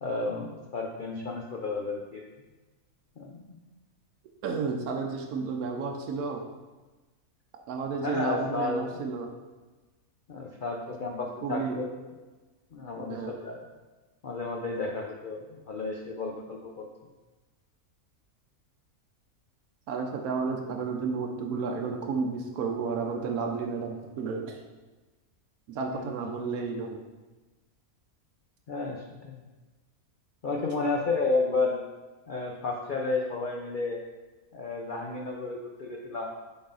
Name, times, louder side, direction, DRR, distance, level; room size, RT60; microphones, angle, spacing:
voice 1, 0.0-2.2 3.2-3.6 8.0-8.9 10.3-11.9 12.7-13.6 14.2-16.8 25.9-26.1 28.7-29.4 30.4-31.8 32.3-34.0 34.5-36.3, left 3 dB, 55° left, 0 dB, 0.6 m, -32 dB
voice 2, 4.4-6.4 7.7-9.3 11.4-11.9 13.1-13.3 19.9-24.6 25.7-27.0, right 4 dB, 80° right, 1 dB, 1.2 m, -32 dB
7.1 x 4.0 x 3.9 m, 1.2 s
omnidirectional pair, 1.6 m